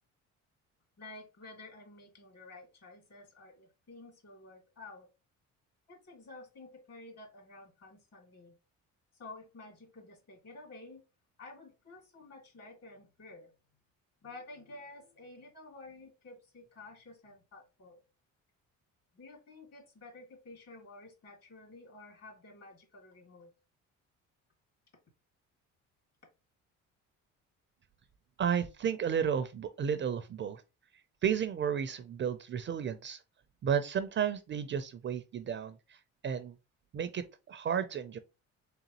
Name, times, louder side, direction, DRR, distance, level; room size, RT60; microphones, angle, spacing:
voice 1, 1.0-5.1 5.9-8.5 9.2-11.0 11.4-13.5 14.2-18.0 19.1-23.5, left 2 dB, 50° left, 2.3 m, -51 dB
voice 2, 28.4-30.6 31.2-33.2 33.6-36.6 36.9-38.2, right 8 dB, 40° right, 0.4 m, -33 dB
3.8 x 3.5 x 2.9 m
cardioid pair, 105°, 31 cm